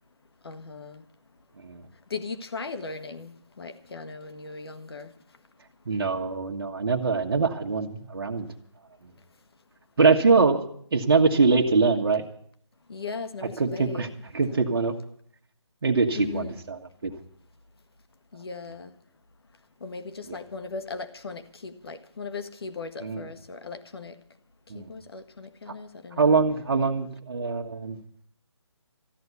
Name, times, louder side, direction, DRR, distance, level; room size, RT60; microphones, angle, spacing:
voice 1, 0.4-1.0 2.1-5.1 12.9-14.1 14.5-14.6 16.1-16.6 18.3-18.9 19.8-24.1 24.7-26.3, left 4 dB, 55° left, 1.4 m, -38 dB
voice 2, 5.8-8.5 10.0-10.6 10.9-12.3 13.6-14.1 14.3-15.0 15.8-17.1 20.3-20.4 23.0-23.2 24.7-24.9 26.2-28.0, right 4 dB, 55° right, 1.5 m, -23 dB
14.0 x 9.8 x 9.5 m
hypercardioid pair, 170°, 15 cm